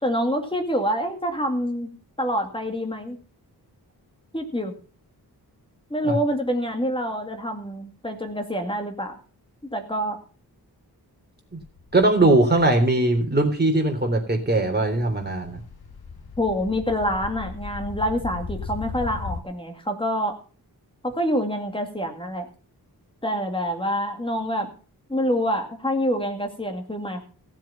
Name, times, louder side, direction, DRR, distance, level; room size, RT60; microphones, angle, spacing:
voice 1, 0.0-1.9 2.2-3.2 4.3-4.7 5.9-9.1 9.7-10.2 16.4-20.4 21.0-22.5 23.2-24.7 25.1-27.2, equal, 15° left, 4 dB, 2.2 m, -26 dB
sound 1, 11.6-12.7 13.4-13.5 13.8-19.4, left 5 dB, 70° left, 1.8 m, -37 dB
voice 2, 11.9-15.6, right 2 dB, 25° right, 3 dB, 3.3 m, -20 dB
16.0 x 7.4 x 5.8 m, 0.39 s
wide cardioid pair, 135°, 38 cm